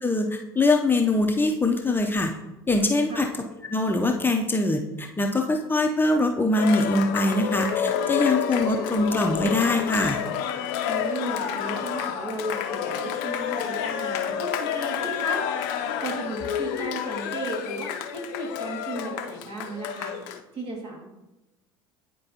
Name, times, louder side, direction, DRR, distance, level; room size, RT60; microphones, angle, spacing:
voice 1, 0.0-2.3 2.7-3.3 3.7-10.2, left 2 dB, 15° left, 3 dB, 0.7 m, -23 dB
Cheering, 6.5-20.4, left 8 dB, 65° left, 0.6 m, -29 dB
voice 2, 10.8-15.4 16.0-20.1 20.5-21.0, right 2 dB, 55° right, -1 dB, 2.3 m, -35 dB
9.6 x 4.4 x 2.9 m, 1.0 s
hypercardioid pair, 70°, 12 cm